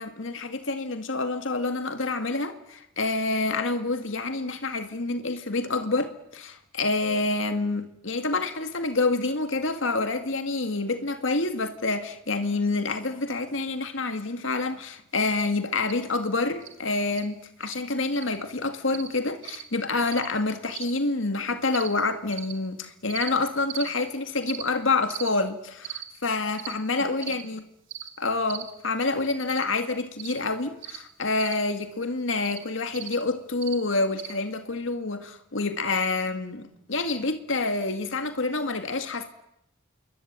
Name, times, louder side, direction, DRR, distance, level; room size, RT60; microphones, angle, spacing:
voice 1, 0.0-27.6 28.2-39.3, left 3 dB, 75° left, 2.1 m, -27 dB
sound 1, 15.3-15.5 15.8-16.0 16.6-16.7 17.1-17.3 17.6-17.8 18.2-18.4 18.9-19.1 19.4-19.6 20.1-20.3 20.7-20.9 21.7-21.9 22.3-22.5 23.1-23.3 23.7-23.9 24.4-24.6 25.1-25.3 25.8-26.0 26.6-26.7 27.2-27.4 27.9-28.1 28.5-28.7 29.5-29.7 30.2-30.4 30.8-31.0 31.4-31.6 32.4-32.6 33.0-33.2 33.6-33.8 34.2-34.3, right 12 dB, 70° right, 3.4 m, -38 dB
28.0 x 23.0 x 9.0 m
head